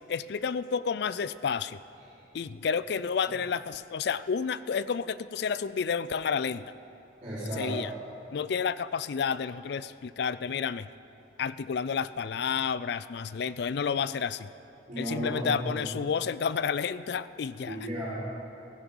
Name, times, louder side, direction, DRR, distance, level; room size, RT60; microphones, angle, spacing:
voice 1, 0.1-1.8 2.3-6.7 7.6-7.9 8.3-10.9 11.4-14.5 15.0-17.8, left 6 dB, 60° left, 16 dB, 0.4 m, -30 dB
voice 2, 7.2-7.8 14.9-15.8 17.7-18.2, equal, 40° right, -14 dB, 3.9 m, -34 dB
16.0 x 10.5 x 5.4 m, 2.9 s
head